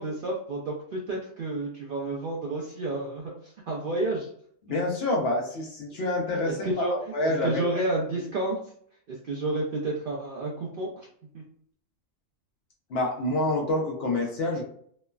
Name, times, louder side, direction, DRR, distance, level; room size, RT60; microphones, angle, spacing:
voice 1, 0.0-4.3 6.5-6.9 7.2-8.6 9.1-11.1 11.3-11.4, right 2 dB, 65° right, -3 dB, 0.5 m, -30 dB
voice 2, 4.7-7.8 12.9-14.6, left 2 dB, 60° left, -1 dB, 0.7 m, -27 dB
3.1 x 2.0 x 2.2 m, 0.62 s
omnidirectional pair, 1.4 m